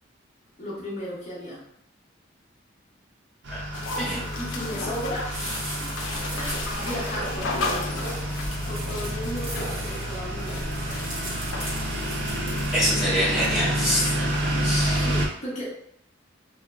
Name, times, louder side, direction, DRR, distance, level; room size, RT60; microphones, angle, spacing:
voice 1, 0.6-1.6 4.0-5.5 6.3-8.1 8.7-10.7 14.9-15.8, equal, 35° left, -7 dB, 0.5 m, -35 dB
sound 1, 3.4-15.3, right 1 dB, 65° right, 0.4 m, -29 dB
sound 2, 3.7-14.5, left 3 dB, 80° left, 0.4 m, -36 dB
sound 3, 5.3-13.0, right 1 dB, 85° right, 1.0 m, -38 dB
voice 2, 12.7-14.1 14.5-15.1, equal, 5° right, -9 dB, 0.9 m, -25 dB
2.9 x 2.4 x 2.2 m, 0.73 s
head